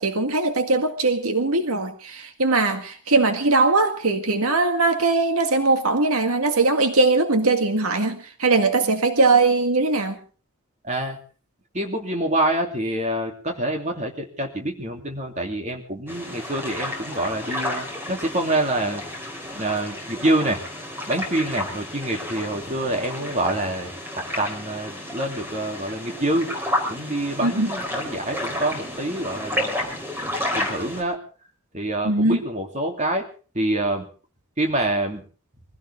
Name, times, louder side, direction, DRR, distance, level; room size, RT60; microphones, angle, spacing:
voice 1, 0.0-10.2 27.4-27.7 32.0-32.4, right 3 dB, 80° right, 6 dB, 1.9 m, -20 dB
voice 2, 10.8-11.2 11.7-19.0 19.6-20.6 21.1-23.9 24.4-26.5 26.9-29.8 30.5-31.2 31.7-33.2 33.5-34.1 34.6-35.2, right 1 dB, 30° right, 3 dB, 2.9 m, -26 dB
sound 1, 16.1-31.0, left 1 dB, 10° right, 3.8 m, -31 dB
23.5 x 16.5 x 3.6 m, 0.38 s
head